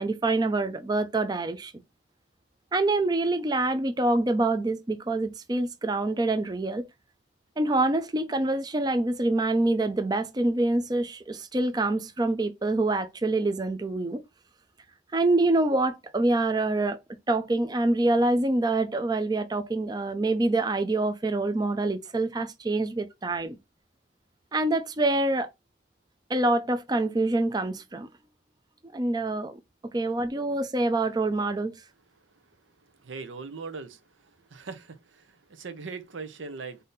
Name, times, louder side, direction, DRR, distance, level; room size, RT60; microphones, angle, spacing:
voice 1, 0.0-1.7 2.7-6.9 7.6-14.2 15.1-17.0 17.3-23.6 24.5-25.5 26.3-28.1 28.9-29.6 29.8-31.7, right 2 dB, 20° right, 0.4 m, -26 dB
voice 2, 33.0-34.0 34.5-35.0 35.6-36.8, right 4 dB, 85° right, 0.7 m, -38 dB
3.9 x 2.7 x 3.7 m
head